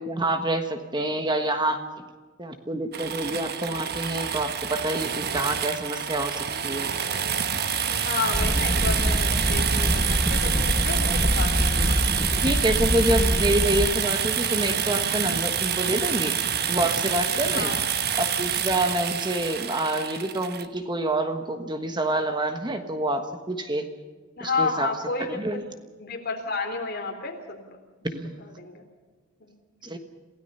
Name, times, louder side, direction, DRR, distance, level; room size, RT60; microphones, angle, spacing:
voice 1, 0.0-1.8 2.4-6.9 11.7-11.9 12.4-16.4 16.7-17.7 18.1-23.9 24.4-24.9 25.2-25.6 28.0-28.3 29.8-30.0, right 1 dB, 20° right, 7 dB, 1.3 m, -27 dB
sound 1, 2.9-20.7, right 8 dB, 50° right, 1.2 m, -27 dB
voice 2, 7.9-12.0 12.3-12.4 17.3-17.8 24.4-25.4 26.0-27.8 28.6-28.8 29.4-29.6, left 4 dB, 50° left, 3 dB, 3.7 m, -31 dB
sound 2, 8.3-13.9, equal, 5° left, 0.6 m, -25 dB
28.0 x 16.5 x 5.6 m, 1.4 s
head